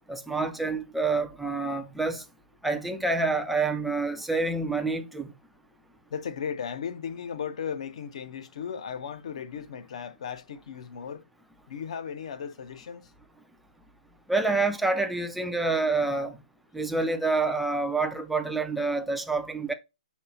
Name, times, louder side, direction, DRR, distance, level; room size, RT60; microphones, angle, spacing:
voice 1, 0.1-2.2 2.6-5.3 14.3-16.4 16.7-19.7, right 3 dB, ahead, 0.4 m, -27 dB
voice 2, 6.1-11.2 11.7-13.1, left 7 dB, 45° left, 0.7 m, -36 dB
4.9 x 4.2 x 5.5 m
hypercardioid pair, 170°, 5 cm